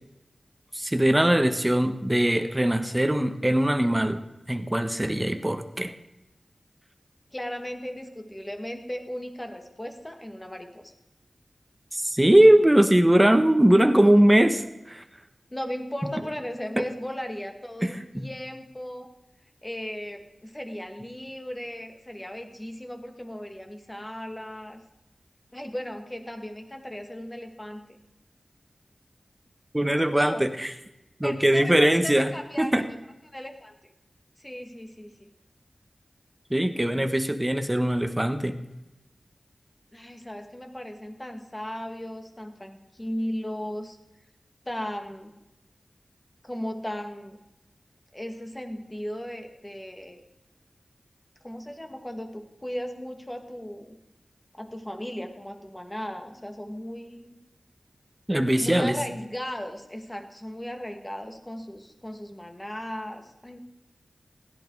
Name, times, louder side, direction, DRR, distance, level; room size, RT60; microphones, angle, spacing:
voice 1, 0.7-4.2 4.5-5.9 11.9-15.0 16.8-16.9 17.8-18.3 29.7-30.7 31.2-32.3 32.6-32.8 36.5-38.5 58.3-58.9, right 1 dB, 15° right, 8 dB, 1.4 m, -21 dB
voice 2, 7.3-10.9 15.5-19.1 19.6-24.8 25.5-27.8 30.1-30.4 31.2-32.8 33.2-33.8 34.4-35.3 39.9-44.0 44.7-45.4 46.4-47.4 48.1-50.2 51.4-54.0 54.5-57.4 58.6-63.6, equal, 20° left, 5 dB, 2.2 m, -36 dB
16.5 x 11.5 x 4.8 m, 0.95 s
wide cardioid pair, 65°, 0 cm